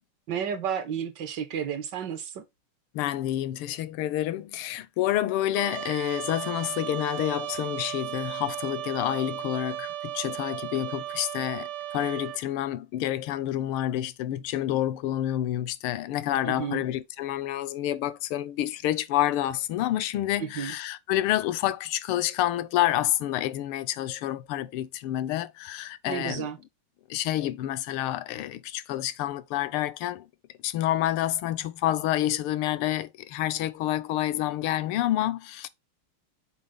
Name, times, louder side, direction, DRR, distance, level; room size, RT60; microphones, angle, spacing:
voice 1, 0.3-2.4 16.5-16.8 20.4-20.7 26.0-26.6, right 8 dB, 65° right, 1.3 m, -32 dB
voice 2, 2.9-26.5 27.1-30.2 30.6-35.7, left 13 dB, 90° left, 1.6 m, -28 dB
Trumpet, 5.5-12.4, right 13 dB, 80° right, 1.7 m, -35 dB
6.6 x 4.6 x 3.6 m
omnidirectional pair, 2.4 m